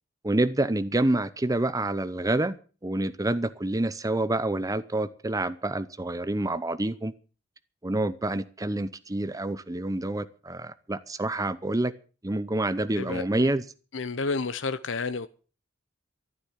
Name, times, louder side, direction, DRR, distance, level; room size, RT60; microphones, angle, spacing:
voice 1, 0.2-2.6 2.8-7.1 7.8-11.9 12.2-13.6, right 2 dB, 20° right, 0.7 m, -27 dB
voice 2, 13.0-13.5 13.9-15.3, left 4 dB, 80° left, 0.8 m, -31 dB
13.5 x 11.5 x 7.4 m
head